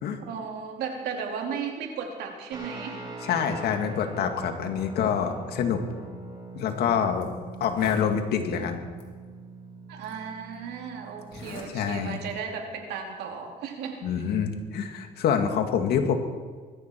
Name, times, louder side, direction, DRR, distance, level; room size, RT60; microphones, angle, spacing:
voice 1, 0.3-3.0 9.9-14.3, right 6 dB, 80° right, 2 dB, 3.1 m, -35 dB
Guitar, 2.5-11.6, right 2 dB, 25° right, 4.9 m, -42 dB
voice 2, 3.2-5.8 6.6-7.3 7.6-8.8 11.7-12.2 14.0-16.1, left 7 dB, 70° left, 5 dB, 2.2 m, -26 dB
Zipper (clothing), 6.6-6.7 7.2-7.3 7.6-8.1 9.0-9.1 10.0-10.1 11.2-11.7 12.1-12.4, left 3 dB, 30° left, 3.8 m, -43 dB
21.0 x 14.5 x 4.6 m, 1.5 s
cardioid pair, 110°, 17 cm